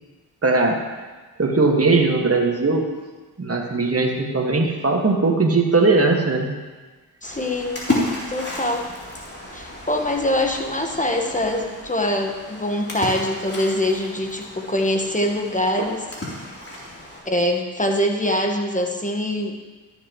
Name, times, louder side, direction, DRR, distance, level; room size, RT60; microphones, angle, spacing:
voice 1, 0.4-0.8 1.4-2.9 3.4-6.5 15.8-15.9, right 3 dB, 35° right, 1 dB, 1.8 m, -19 dB
Splash splatter, 7.2-17.2, left 1 dB, 35° left, 3.5 m, -32 dB
voice 2, 7.2-7.8 8.3-8.9 9.5-16.0 17.2-19.6, left 1 dB, 20° left, 2 dB, 1.5 m, -23 dB
13.0 x 7.7 x 3.1 m, 1.3 s
supercardioid pair, 40°, 43 cm